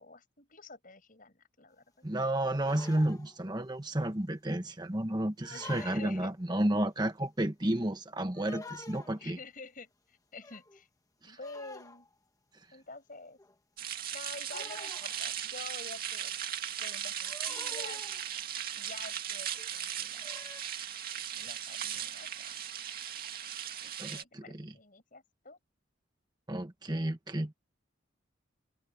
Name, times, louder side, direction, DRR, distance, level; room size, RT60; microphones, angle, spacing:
voice 1, 0.0-1.8 5.5-6.3 9.2-10.9 11.3-12.1 12.7-13.4 14.1-16.4 16.8-18.0 18.8-20.3 21.3-22.6 23.8-25.6, left 3 dB, 45° left, 6.0 m, -49 dB
voice 2, 2.0-9.4 11.2-11.4 24.0-24.7 26.5-27.5, right 1 dB, 20° right, 1.2 m, -32 dB
sound 1, 2.5-3.4 5.4-6.3 8.3-9.2 10.4-10.8 11.4-12.1 13.4-13.6 14.5-15.5 17.2-18.4 19.3-19.7 20.2-20.6, left 2 dB, 20° left, 1.2 m, -48 dB
sound 2, 13.8-24.2, right 9 dB, 50° right, 2.3 m, -38 dB
head